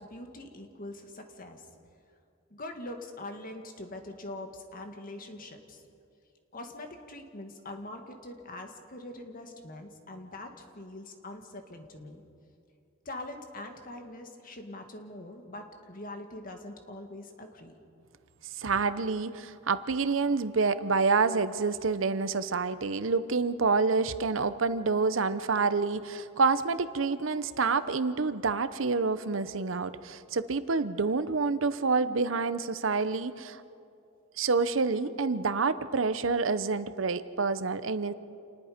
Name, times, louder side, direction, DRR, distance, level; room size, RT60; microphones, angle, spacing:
voice 1, 0.0-1.7 2.5-5.8 6.5-12.2 13.1-17.7, left 1 dB, 45° left, 5 dB, 1.9 m, -43 dB
voice 2, 18.6-33.6 34.4-38.1, right 4 dB, 80° right, 13 dB, 0.8 m, -28 dB
28.0 x 19.5 x 5.2 m, 2.5 s
head